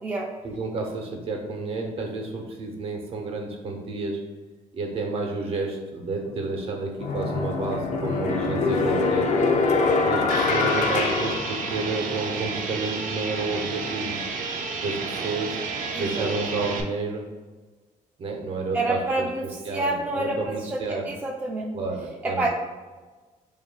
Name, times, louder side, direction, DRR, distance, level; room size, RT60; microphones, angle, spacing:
voice 1, 0.4-4.2 4.7-9.3 10.0-14.2 14.8-15.6 16.0-17.3 18.2-21.1 21.7-22.5, right 3 dB, 45° right, 1 dB, 0.8 m, -30 dB
sound 1, 6.3-6.4 7.0-12.2, left 4 dB, 60° left, 0.5 m, -24 dB
sound 2, 10.3-16.8, right 4 dB, 85° right, 0.6 m, -31 dB
voice 2, 15.9-16.3 18.7-21.7 22.2-22.5, right 2 dB, 15° right, -2 dB, 0.3 m, -28 dB
7.4 x 2.5 x 2.2 m, 1.3 s
cardioid pair, 155°, 13 cm